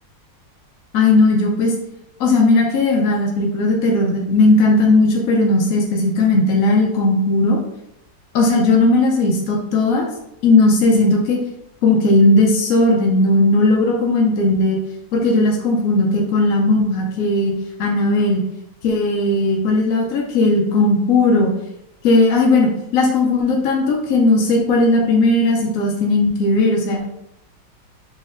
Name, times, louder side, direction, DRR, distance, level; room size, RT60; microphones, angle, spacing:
voice 1, 0.9-1.7 2.2-7.6 8.3-10.0 10.4-11.4 11.8-14.8 15.1-17.5 17.8-18.4 18.8-21.5 22.0-27.0, left 2 dB, 70° left, -1 dB, 0.8 m, -16 dB
4.1 x 2.9 x 2.5 m, 0.82 s
omnidirectional pair, 2.0 m